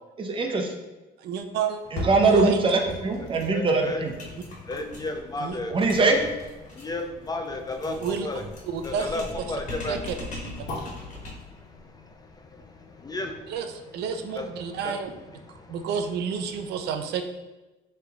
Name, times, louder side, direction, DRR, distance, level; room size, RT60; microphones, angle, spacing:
voice 1, 0.2-0.7 1.9-4.1 5.7-6.2, right 3 dB, 30° right, 3 dB, 0.7 m, -22 dB
voice 2, 1.2-1.8 2.2-2.6 5.4-5.6 7.9-8.3 8.7-9.4 9.9-10.1 13.5-13.7 13.9-15.1 15.7-17.2, right 7 dB, 75° right, 6 dB, 0.5 m, -30 dB
sound 1, 1.7-13.7 14.1-14.2, left 1 dB, 80° left, 1.3 m, -41 dB
sound 2, 2.6-2.8 3.1-3.2 3.4-11.6, left 2 dB, 45° left, 1.5 m, -41 dB
voice 3, 3.2-4.0 4.3-6.3 6.6-8.4 8.8-10.1 10.6-14.0 14.3-15.9, left 2 dB, 25° left, 5 dB, 0.4 m, -35 dB
6.6 x 3.3 x 2.4 m, 1.1 s
cardioid pair, 110°, 17 cm